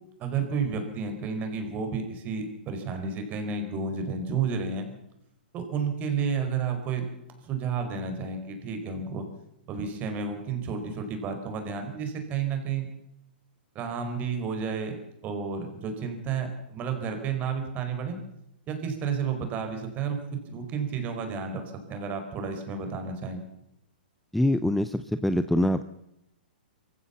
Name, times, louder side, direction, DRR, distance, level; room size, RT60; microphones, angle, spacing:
voice 1, 0.2-4.9 5.5-7.1 7.4-9.3 9.7-12.9 13.7-15.0 15.2-18.2 18.7-23.4, right 5 dB, 30° right, 6 dB, 4.8 m, -31 dB
voice 2, 24.3-25.8, left 1 dB, ahead, 12 dB, 0.7 m, -24 dB
24.0 x 15.5 x 7.2 m, 0.83 s
hypercardioid pair, 125°, 5 cm